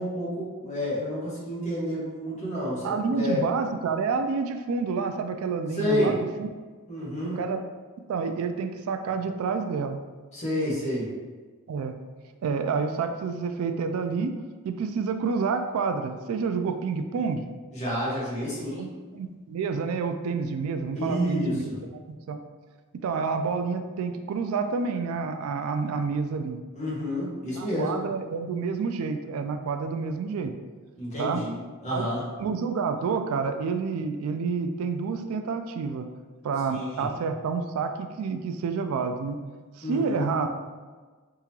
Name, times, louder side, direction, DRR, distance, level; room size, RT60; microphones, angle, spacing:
voice 1, 0.0-3.4 5.7-6.2 6.9-7.5 10.3-11.1 17.7-18.9 20.9-21.8 26.7-27.9 31.0-32.3 36.7-37.1 39.8-40.3, equal, 30° left, -7 dB, 1.2 m, -29 dB
voice 2, 2.8-6.5 7.2-7.6 8.1-10.0 11.7-11.9 12.4-14.4 14.6-17.4 18.8-21.7 22.1-22.4 23.0-26.6 27.6-30.5 31.2-31.4 31.9-32.1 32.4-36.1 36.4-39.4 39.9-40.5, right 5 dB, 75° right, 8 dB, 0.3 m, -29 dB
3.6 x 2.8 x 2.9 m, 1.4 s
head